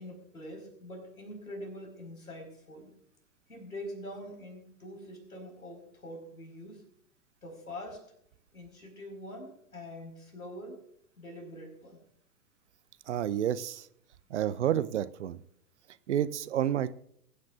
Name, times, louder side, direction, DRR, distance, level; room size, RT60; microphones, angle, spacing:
voice 1, 0.0-2.9 3.5-6.8 7.4-8.1 8.5-10.8 11.2-12.0, left 1 dB, 75° left, 2 dB, 4.8 m, -44 dB
voice 2, 13.1-13.9 14.3-15.4 16.1-16.9, right 10 dB, 50° right, 16 dB, 0.6 m, -29 dB
21.5 x 9.6 x 2.5 m, 0.70 s
figure-of-eight pair, 105°, 44 cm